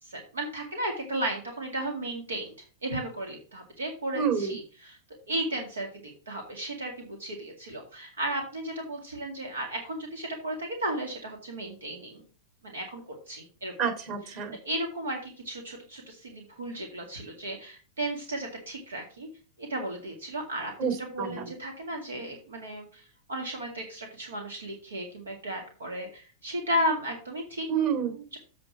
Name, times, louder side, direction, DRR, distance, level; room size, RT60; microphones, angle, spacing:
voice 1, 0.0-2.5 2.8-5.0 5.3-12.3 12.6-13.7 14.6-19.3 19.6-20.7 21.0-27.7 28.3-28.4, right 1 dB, 85° right, 3 dB, 2.1 m, -34 dB
voice 2, 4.1-4.6 13.8-14.5 20.8-21.4 27.7-28.1, right 7 dB, 50° right, 4 dB, 3.3 m, -28 dB
7.7 x 5.1 x 6.0 m, 0.37 s
hypercardioid pair, 100°, 0 cm